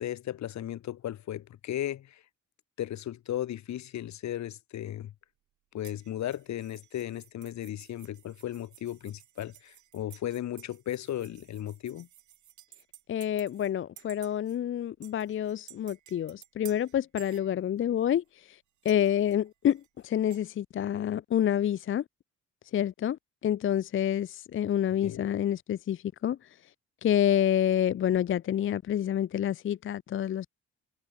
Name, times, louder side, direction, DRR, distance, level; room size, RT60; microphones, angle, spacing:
voice 1, 0.0-2.2 2.8-5.1 5.7-12.1 25.0-25.2, left 12 dB, 65° left, 1.3 m, -36 dB
sound 1, 5.8-13.7 14.0-14.6 15.0-18.0 18.8-20.4, right 12 dB, 75° right, 3.5 m, -54 dB
voice 2, 13.1-18.6 18.8-22.0 22.7-26.6 27.0-30.5, left 10 dB, 45° left, 0.5 m, -28 dB
cardioid pair, 90°, 30 cm